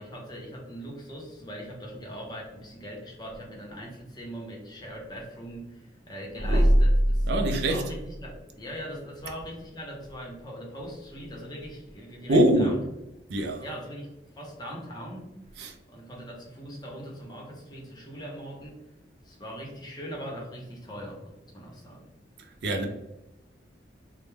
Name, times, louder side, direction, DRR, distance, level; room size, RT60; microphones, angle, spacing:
voice 1, 0.0-7.3 7.7-12.8 13.6-18.8 19.2-21.2 21.5-22.1, equal, 20° left, 0.5 m, -41 dB
voice 2, 6.4-6.7 7.3-7.9 12.3-12.7 13.3-13.6 15.6-15.7 22.6-22.9, right 1 dB, 65° right, 0.4 m, -23 dB
2.2 x 2.0 x 3.0 m
head